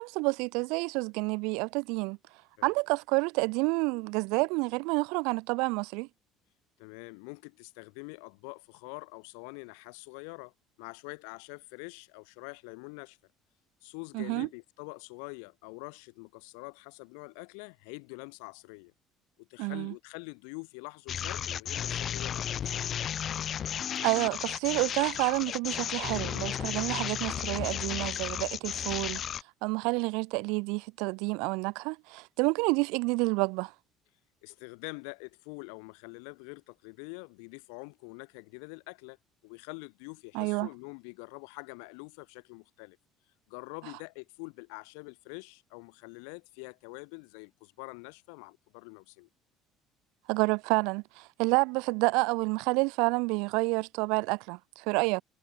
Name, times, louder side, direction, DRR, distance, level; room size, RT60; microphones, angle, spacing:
voice 1, 0.0-2.2 2.6-6.1 14.1-14.5 19.6-19.9 24.0-29.2 29.6-33.7 40.3-40.7 50.3-55.2, right 29 dB, 80° right, 0.7 m, -29 dB
voice 2, 6.8-10.5 10.8-13.2 13.8-18.9 19.4-22.9 34.4-39.2 39.4-43.0 43.5-49.3, left 40 dB or more, 85° left, 4.8 m, -45 dB
sound 1, 21.1-29.4, left 9 dB, 50° left, 2.6 m, -34 dB
supercardioid pair, 90°, 0 cm